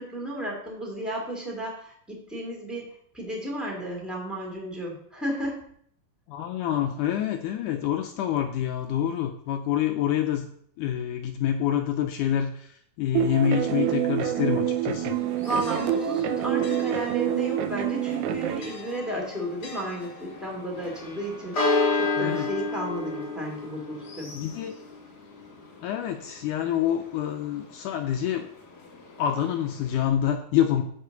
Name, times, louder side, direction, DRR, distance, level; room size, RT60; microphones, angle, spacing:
voice 1, 0.0-2.9 3.1-5.6 15.4-21.6 21.9-24.3, right 1 dB, ahead, -2 dB, 2.0 m, -33 dB
voice 2, 6.3-10.5 10.8-15.2 22.2-22.5 24.3-24.8 25.8-28.5 29.2-30.8, left 10 dB, 80° left, 5 dB, 1.9 m, -27 dB
sound 1, 13.1-18.6, right 10 dB, 80° right, 1.7 m, -26 dB
Church bell, 15.0-30.1, left 3 dB, 40° left, 1.4 m, -34 dB
9.8 x 4.4 x 6.8 m, 0.65 s
omnidirectional pair, 4.1 m